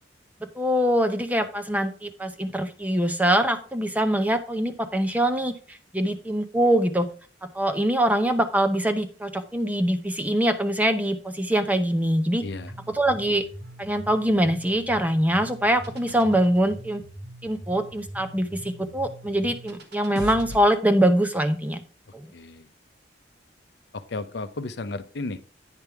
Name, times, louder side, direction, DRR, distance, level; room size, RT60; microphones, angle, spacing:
voice 1, 0.4-7.1 7.5-12.4 12.9-13.4 13.8-17.0 17.4-21.8 22.1-22.3, right 1 dB, 10° right, 8 dB, 0.7 m, -23 dB
voice 2, 12.4-12.7 22.3-22.7 23.9-25.5, left 3 dB, 65° left, 11 dB, 0.7 m, -34 dB
sound 1, 12.5-20.6, equal, 60° right, 1.4 m, -41 dB
9.2 x 5.3 x 4.6 m, 0.37 s
head